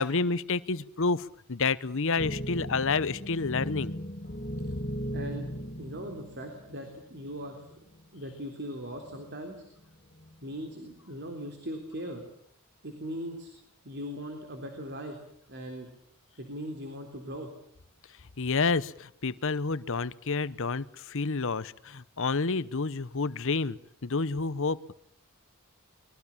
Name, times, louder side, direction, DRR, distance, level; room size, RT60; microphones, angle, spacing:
voice 1, 0.0-3.9 18.4-24.9, left 4 dB, 60° left, 17 dB, 0.9 m, -29 dB
sound 1, 2.2-7.0 7.7-7.8 9.0-9.5 10.2-10.6, equal, 40° left, 1.2 m, -37 dB
voice 2, 5.1-7.7 8.1-9.6 10.4-12.2 12.8-13.5 13.8-15.2 15.5-15.9 16.4-17.5, equal, 50° right, 4 dB, 3.7 m, -39 dB
24.5 x 21.5 x 7.3 m, 0.69 s
head